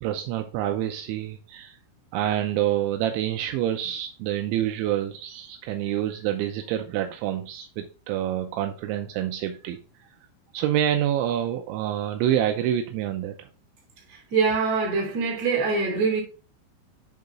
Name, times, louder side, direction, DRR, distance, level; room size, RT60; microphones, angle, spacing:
voice 1, 0.0-1.8 2.1-9.8 10.5-13.5, right 11 dB, 85° right, 2.7 m, -27 dB
voice 2, 14.3-16.2, right 4 dB, 40° right, 3.3 m, -23 dB
10.5 x 3.9 x 3.6 m
omnidirectional pair, 5.9 m